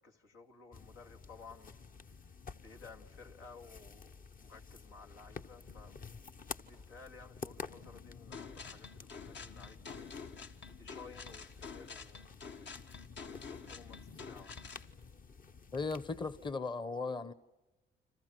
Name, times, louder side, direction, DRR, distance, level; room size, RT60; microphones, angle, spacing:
voice 1, 0.0-1.8 2.6-6.0 6.6-10.1 10.8-12.3 13.3-14.6, left 4 dB, 90° left, 2.4 m, -55 dB
sound 1, 0.7-16.5, left 5 dB, 45° left, 1.1 m, -51 dB
sound 2, 8.3-14.9, left 5 dB, 65° left, 1.8 m, -48 dB
voice 2, 15.7-17.3, left 4 dB, 25° left, 0.9 m, -37 dB
29.5 x 27.0 x 6.2 m
cardioid pair, 90°, 20 cm